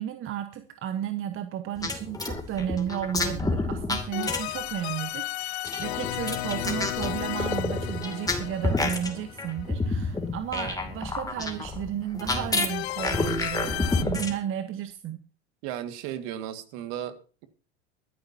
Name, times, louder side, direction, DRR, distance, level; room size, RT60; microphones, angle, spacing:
voice 1, 0.0-15.2, right 10 dB, 40° right, 1.2 m, -33 dB
sound 1, 1.8-4.7 5.6-14.4, left 3 dB, 10° left, 2.5 m, -30 dB
sound 2, 4.1-10.0 12.7-14.0, left 18 dB, 65° left, 0.7 m, -34 dB
voice 2, 15.6-17.5, right 11 dB, 55° right, 1.9 m, -35 dB
23.5 x 9.9 x 2.8 m
hypercardioid pair, 85°, 34 cm